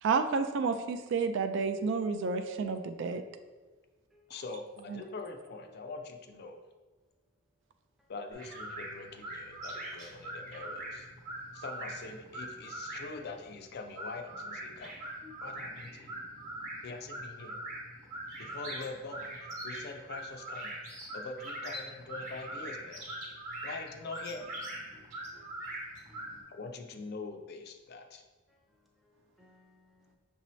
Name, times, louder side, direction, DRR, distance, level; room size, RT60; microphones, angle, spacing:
voice 1, 0.0-3.2 4.9-5.0, right 4 dB, 60° right, 0.3 m, -30 dB
voice 2, 4.3-6.6 8.1-11.1 11.5-15.0 15.4-16.1 16.8-17.6 18.4-23.0 23.6-24.5 26.5-28.2, left 3 dB, 50° left, 0.4 m, -44 dB
sound 1, 8.3-26.4, right 1 dB, 35° right, 1.0 m, -42 dB
voice 3, 24.9-25.6 26.1-26.5 28.5-28.6 29.0-30.2, left 5 dB, ahead, 0.6 m, -61 dB
6.0 x 2.7 x 3.1 m
head